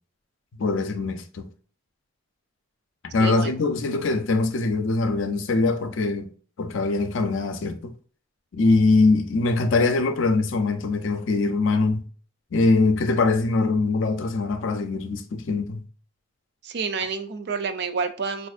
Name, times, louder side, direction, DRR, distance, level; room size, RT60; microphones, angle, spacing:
voice 1, 0.6-1.5 3.0-6.3 6.6-7.9 8.5-12.1 12.5-15.8, left 3 dB, 70° left, 0.5 m, -22 dB
voice 2, 3.2-3.5 16.6-18.5, right 5 dB, 55° right, 0.4 m, -28 dB
4.2 x 2.5 x 2.4 m
head